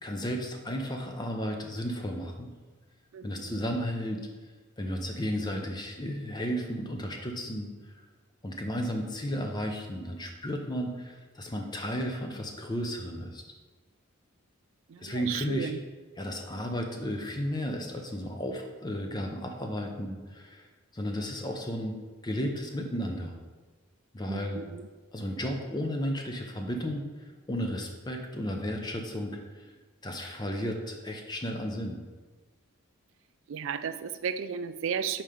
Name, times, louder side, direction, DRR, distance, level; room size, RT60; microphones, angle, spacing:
voice 1, 0.0-2.5 3.2-4.2 4.8-8.0 8.4-13.4 15.0-15.7 16.2-20.7 20.9-22.0 22.2-23.4 24.1-24.6 25.1-29.7 30.0-32.0, equal, 20° left, 3 dB, 0.5 m, -33 dB
voice 2, 3.1-3.6 14.9-15.8 24.3-24.8 33.5-35.2, right 7 dB, 60° right, 12 dB, 0.3 m, -34 dB
5.4 x 4.4 x 5.0 m, 1.3 s
head